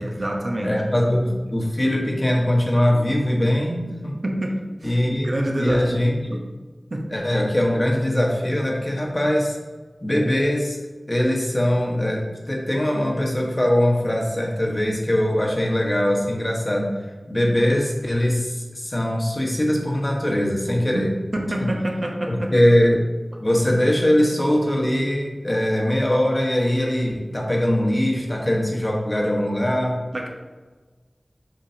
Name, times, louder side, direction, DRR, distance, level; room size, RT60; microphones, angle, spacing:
voice 1, 0.0-1.4 3.9-4.0 4.2-6.5 6.9-7.1 20.9-22.6 30.1-30.3, right 1 dB, 55° right, 0 dB, 1.0 m, -27 dB
voice 2, 0.6-4.1 4.8-6.4 7.1-9.6 10.0-10.8 11.1-16.9 17.3-21.1 21.6-21.7 22.3-23.0 23.4-30.0, left 1 dB, 30° left, -1 dB, 1.4 m, -21 dB
7.5 x 5.0 x 2.9 m, 1.3 s
wide cardioid pair, 55°, 0 cm